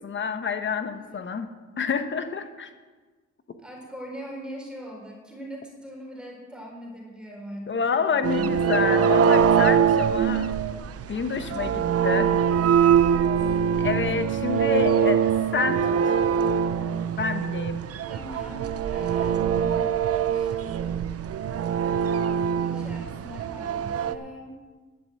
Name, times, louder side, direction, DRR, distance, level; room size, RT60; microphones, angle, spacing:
voice 1, 0.0-1.5 1.8-2.7 7.7-10.5 11.1-12.4 13.8-15.2 15.5-16.2 17.2-17.8, left 5 dB, 40° left, 9 dB, 1.3 m, -28 dB
voice 2, 3.6-8.5 12.8-13.3 14.7-15.5 18.1-19.7 20.3-20.6 22.5-24.6, equal, 5° right, -1 dB, 3.9 m, -41 dB
sound 1, 8.2-24.1, right 8 dB, 50° right, 0.7 m, -23 dB
12.0 x 8.1 x 7.8 m, 1.4 s
cardioid pair, 90°, 30 cm